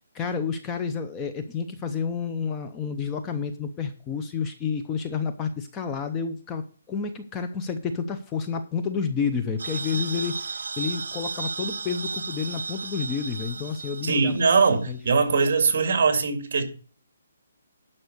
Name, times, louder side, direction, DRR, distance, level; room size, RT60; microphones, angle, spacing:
voice 1, 0.1-14.4 14.9-15.0, left 6 dB, 10° left, 0.6 m, -30 dB
sound 1, 9.6-14.9, right 4 dB, 80° right, 0.9 m, -34 dB
voice 2, 14.0-16.6, right 4 dB, 45° right, 2.1 m, -21 dB
11.5 x 5.5 x 6.5 m
hypercardioid pair, 175°, 0 cm